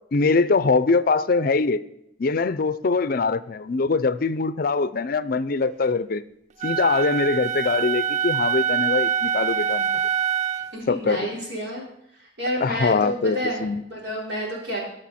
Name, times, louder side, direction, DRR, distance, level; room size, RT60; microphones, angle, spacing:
voice 1, 0.1-1.8 2.2-6.2 6.6-9.9 10.9-11.4 12.6-13.8, left 4 dB, 50° left, 15 dB, 0.5 m, -22 dB
Wind instrument woodwind instrument, 6.6-10.8, right 8 dB, 40° right, 0.3 m, -25 dB
voice 2, 10.7-11.8 12.4-13.6 13.9-14.8, equal, 75° right, -4 dB, 4.5 m, -29 dB
19.0 x 6.5 x 4.2 m, 0.80 s
head